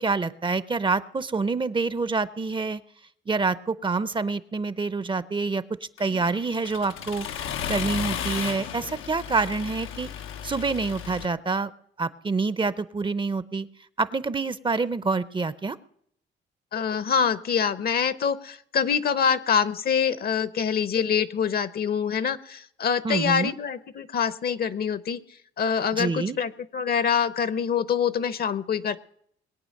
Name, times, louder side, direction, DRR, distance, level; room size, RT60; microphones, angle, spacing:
voice 1, 0.0-2.8 3.3-5.6 6.0-7.3 7.7-10.1 10.4-11.7 12.0-13.7 14.0-15.8 23.0-23.5 25.9-26.4, right 4 dB, 25° right, 15 dB, 0.6 m, -27 dB
Accelerating revving vroom, 6.0-11.2, left 9 dB, 85° left, 0.9 m, -34 dB
voice 2, 16.7-25.2 25.6-29.0, left 7 dB, 50° left, 16 dB, 0.8 m, -25 dB
21.0 x 8.7 x 6.5 m, 0.68 s
cardioid pair, 90°, 20 cm